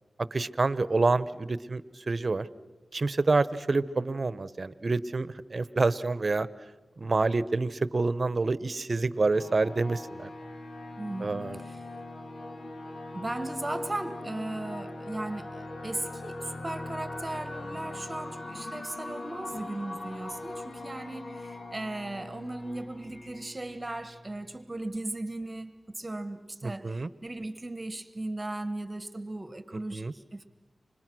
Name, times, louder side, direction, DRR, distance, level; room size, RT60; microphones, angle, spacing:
voice 1, 0.3-2.5 2.9-6.5 7.0-10.3 11.2-11.6 26.6-27.1 29.9-30.1, right 3 dB, 50° right, 16 dB, 1.0 m, -27 dB
sound 1, 9.3-24.6, left 2 dB, 65° left, 1.9 m, -41 dB
voice 2, 11.0-11.9 13.1-30.5, right 2 dB, 30° right, 11 dB, 1.5 m, -37 dB
30.0 x 26.0 x 6.3 m, 1.2 s
cardioid pair, 50°, 0 cm